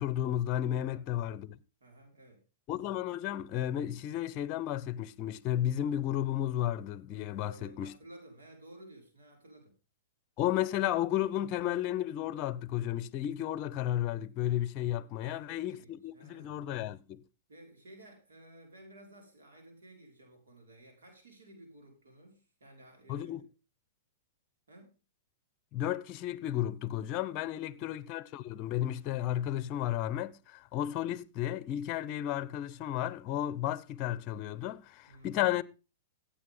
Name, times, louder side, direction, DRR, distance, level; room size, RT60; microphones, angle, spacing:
voice 1, 0.0-1.6 2.7-7.9 10.4-17.2 23.1-23.4 25.7-35.6, left 12 dB, 35° left, 0.7 m, -33 dB
voice 2, 1.8-2.4 7.4-9.7 15.2-16.6 17.5-23.4 24.7-25.0 27.5-27.9 35.0-35.5, right 1 dB, 90° right, 5.4 m, -55 dB
15.5 x 8.4 x 3.8 m
hypercardioid pair, 130°, 0 cm